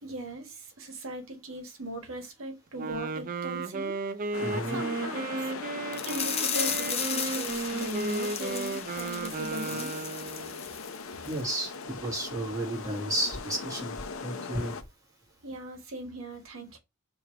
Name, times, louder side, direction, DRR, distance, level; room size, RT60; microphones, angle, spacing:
voice 1, 0.0-4.0 4.5-5.5 6.0-10.1 15.4-16.8, right 1 dB, 75° right, 1.3 m, -39 dB
Wind instrument woodwind instrument, 2.7-10.7, right 3 dB, 40° right, 0.4 m, -34 dB
sound 1, 4.3-14.8, left 5 dB, 75° left, 0.6 m, -40 dB
voice 2, 4.4-4.8 11.2-13.9 14.2-14.8, right 1 dB, 15° right, 1.8 m, -32 dB
sound 2, 5.9-11.0 11.2-11.4 11.8-11.9, left 7 dB, 30° left, 0.6 m, -35 dB
3.7 x 3.0 x 4.4 m
head